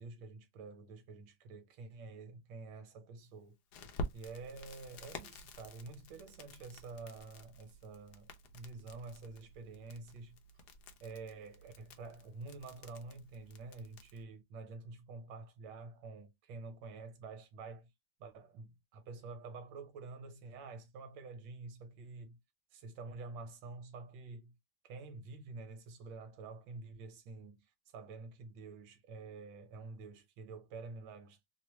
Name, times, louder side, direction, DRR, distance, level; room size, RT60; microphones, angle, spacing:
voice 1, 0.0-3.6 4.1-10.4 11.0-17.9 18.2-22.4 22.7-24.5 24.8-31.5, right 3 dB, 65° right, 1.5 m, -48 dB
Crackle, 3.7-14.2, left 1 dB, 70° left, 0.9 m, -49 dB
3.4 x 2.1 x 3.0 m
omnidirectional pair, 2.3 m